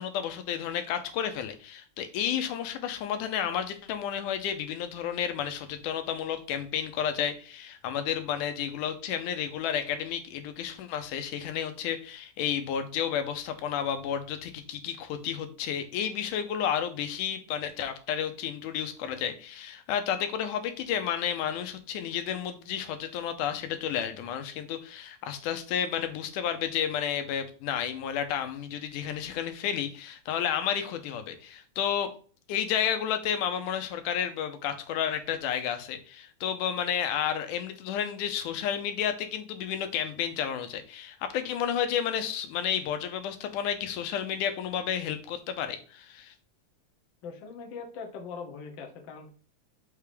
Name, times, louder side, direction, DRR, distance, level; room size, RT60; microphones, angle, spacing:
voice 1, 0.0-32.1 32.5-46.3, left 9 dB, 80° left, 8 dB, 2.3 m, -31 dB
voice 2, 47.2-49.3, left 5 dB, 65° left, 2 dB, 1.2 m, -41 dB
5.5 x 3.5 x 4.9 m, 0.40 s
omnidirectional pair, 3.6 m